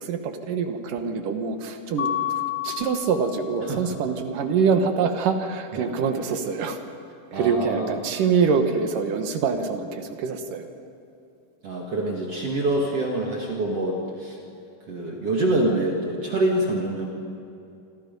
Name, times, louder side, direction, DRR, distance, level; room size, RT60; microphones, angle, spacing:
voice 1, 0.0-2.2 2.6-6.8 7.3-10.7, right 5 dB, 70° right, 6 dB, 2.8 m, -25 dB
Mallet percussion, 2.0-3.8, left 12 dB, 65° left, 3.2 m, -30 dB
voice 2, 3.6-4.0 5.7-5.8 7.3-8.0 11.6-14.4 14.9-17.1, right 1 dB, 45° right, -1 dB, 2.6 m, -26 dB
27.0 x 25.5 x 5.4 m, 2.7 s
omnidirectional pair, 4.2 m